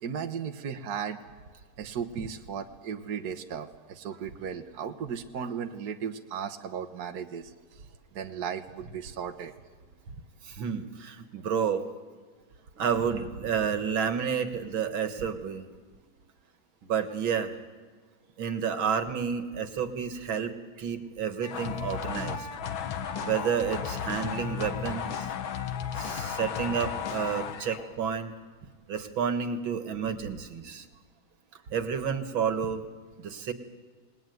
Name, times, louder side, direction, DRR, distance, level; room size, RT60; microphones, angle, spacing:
voice 1, 0.0-1.2 1.8-7.8 8.1-9.5, right 7 dB, 55° right, 5 dB, 1.6 m, -36 dB
voice 2, 10.4-11.9 12.8-15.7 16.8-17.6 18.4-22.5 23.2-25.3 25.9-28.3 28.9-30.9 31.7-32.8 33.2-33.5, right 7 dB, 85° right, 7 dB, 2.4 m, -30 dB
sound 1, 21.4-27.9, left 8 dB, 85° left, 1.9 m, -34 dB
28.0 x 19.5 x 9.4 m, 1.5 s
omnidirectional pair, 2.1 m